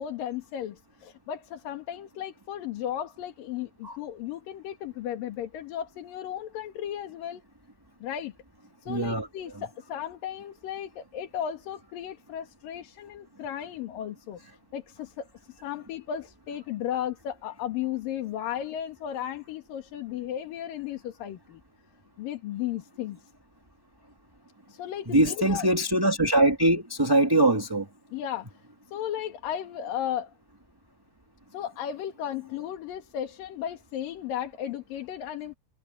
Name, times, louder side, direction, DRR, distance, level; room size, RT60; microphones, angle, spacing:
voice 1, 0.0-7.4 8.0-8.3 8.8-21.6 22.2-23.3 24.7-25.7 28.1-28.6 28.9-30.3 31.5-35.6, left 10 dB, 75° left, 3.5 m, -35 dB
voice 2, 8.9-9.3 25.1-27.9, right 1 dB, 10° right, 1.9 m, -22 dB
omnidirectional pair, 4.1 m